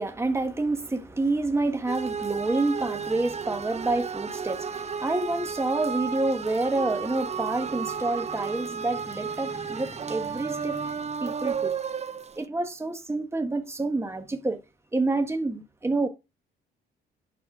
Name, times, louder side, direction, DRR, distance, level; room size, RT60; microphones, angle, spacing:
voice 1, 0.0-11.7 12.4-14.6 14.9-16.1, right 2 dB, 15° right, 1.3 m, -28 dB
sound 1, 1.9-12.4, right 6 dB, 35° right, 0.7 m, -33 dB
11.5 x 4.3 x 6.0 m
cardioid pair, 90°, 20 cm